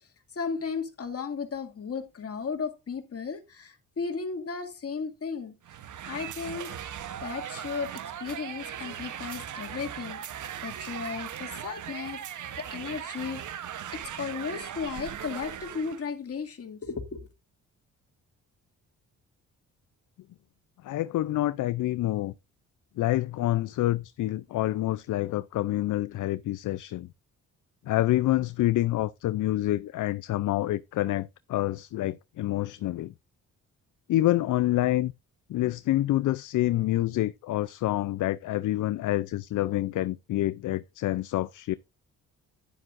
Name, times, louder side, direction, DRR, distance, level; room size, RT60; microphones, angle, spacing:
voice 1, 0.3-5.6 6.1-6.7 7.2-10.2 10.6-12.2 12.6-13.4 13.9-17.3, left 5 dB, 45° left, 2.3 m, -35 dB
sound 1, 5.6-16.0, right 10 dB, 65° right, 1.0 m, -39 dB
voice 2, 20.8-22.3 23.0-27.1 27.9-33.1 34.1-35.1 35.5-41.7, left 15 dB, 65° left, 0.5 m, -27 dB
10.5 x 10.0 x 2.5 m
cardioid pair, 75°, 33 cm